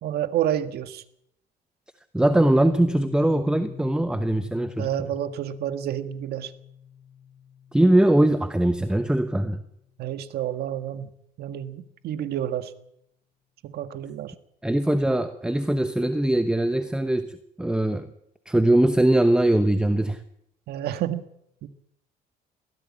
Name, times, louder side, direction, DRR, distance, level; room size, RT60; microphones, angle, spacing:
voice 1, 0.0-1.0 4.8-6.5 10.0-11.1 11.4-12.7 13.6-14.3 20.7-21.3 21.6-21.7, right 11 dB, 70° right, 10 dB, 1.7 m, -29 dB
voice 2, 2.1-5.1 7.7-9.6 14.6-18.1 18.5-20.2, right 1 dB, 5° right, 10 dB, 1.0 m, -21 dB
Piano, 2.2-9.7, left 8 dB, 30° left, 3.1 m, -43 dB
22.0 x 15.0 x 8.5 m, 0.76 s
cardioid pair, 110°, 17 cm